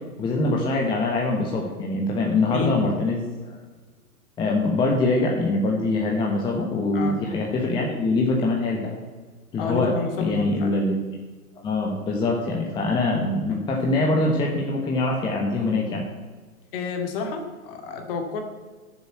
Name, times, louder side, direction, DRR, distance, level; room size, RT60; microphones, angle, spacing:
voice 1, 0.0-3.6 4.4-8.9 9.5-9.9 10.2-10.9 11.6-16.0, left 2 dB, 10° left, -1 dB, 1.0 m, -24 dB
voice 2, 9.6-10.7 16.7-18.4, left 5 dB, 35° left, 4 dB, 2.3 m, -30 dB
11.5 x 7.2 x 7.8 m, 1.4 s
hypercardioid pair, 150°, 44 cm